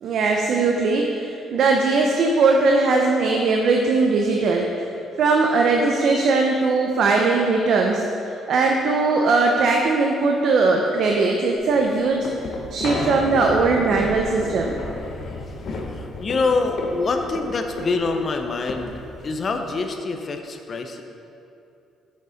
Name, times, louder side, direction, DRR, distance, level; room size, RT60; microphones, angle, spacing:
voice 1, 0.0-4.9 5.2-12.3 12.7-14.8, right 3 dB, 60° right, 1 dB, 0.6 m, -20 dB
sound 1, 11.6-19.7, left 2 dB, 55° left, 1.1 m, -32 dB
voice 2, 15.7-21.0, left 3 dB, 35° left, 5 dB, 0.6 m, -25 dB
6.7 x 6.5 x 5.1 m, 2.7 s
cardioid pair, 140°, 0 cm